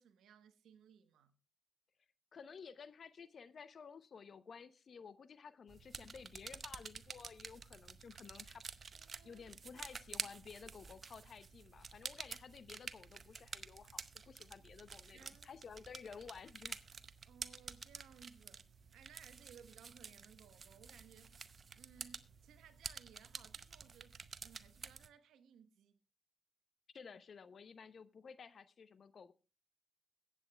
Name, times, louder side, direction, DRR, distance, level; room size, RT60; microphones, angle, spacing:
voice 1, 0.0-1.3 8.9-9.5 9.7-9.9 10.2-10.3 15.1-15.6 17.2-18.6 18.9-21.5 21.7-24.2 24.4-26.0, right 8 dB, 80° right, 1.0 m, -62 dB
voice 2, 2.3-8.6 9.2-16.8 26.9-29.3, left 6 dB, 60° left, 0.7 m, -54 dB
sound 1, 5.7-25.1, right 5 dB, 50° right, 0.7 m, -50 dB
21.5 x 8.4 x 2.3 m
supercardioid pair, 50°, 0 cm